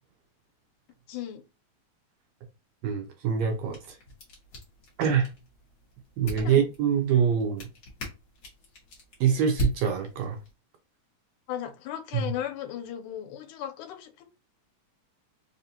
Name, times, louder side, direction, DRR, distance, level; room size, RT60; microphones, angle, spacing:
voice 1, 1.1-1.4 6.4-6.6 11.5-14.2, left 11 dB, 90° left, 2.1 m, -36 dB
voice 2, 2.8-3.9 5.0-5.3 6.2-7.6 9.2-10.4 12.1-12.3, right 7 dB, 75° right, 1.7 m, -25 dB
sound 1, 3.4-10.5, equal, 50° left, 1.5 m, -39 dB
4.7 x 2.5 x 2.7 m
omnidirectional pair, 3.5 m